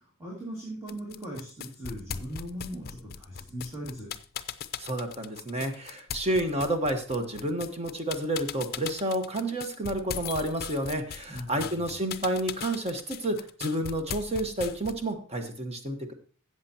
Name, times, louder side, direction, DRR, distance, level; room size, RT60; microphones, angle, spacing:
voice 1, 0.0-4.1 11.3-11.9, equal, 15° right, -5 dB, 2.4 m, -39 dB
sound 1, 0.9-15.1, left 8 dB, 45° left, 0.5 m, -39 dB
voice 2, 4.8-16.1, right 1 dB, 30° right, 5 dB, 1.3 m, -30 dB
13.5 x 7.9 x 2.9 m, 0.41 s
head